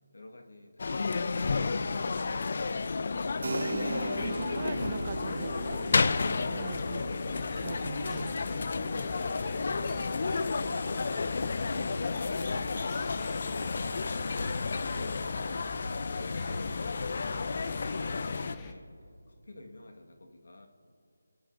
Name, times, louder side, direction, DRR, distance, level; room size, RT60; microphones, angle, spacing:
voice 1, 0.1-3.2 8.7-12.4 12.9-14.1 14.6-18.9 19.3-20.7, left 2 dB, 70° left, 4 dB, 1.4 m, -50 dB
sound 1, 0.8-18.6, left 4 dB, 45° left, 0.4 m, -32 dB
Keyboard (musical), 3.4-11.8, right 2 dB, 55° right, 0.9 m, -41 dB
voice 2, 3.7-5.8 6.5-7.0 7.6-8.3 11.8-11.9, right 6 dB, 30° right, 15 dB, 0.3 m, -41 dB
sound 2, 4.1-18.7, left 3 dB, 15° left, 0.7 m, -45 dB
25.5 x 9.7 x 2.5 m, 2.5 s
figure-of-eight pair, 170°, 0 cm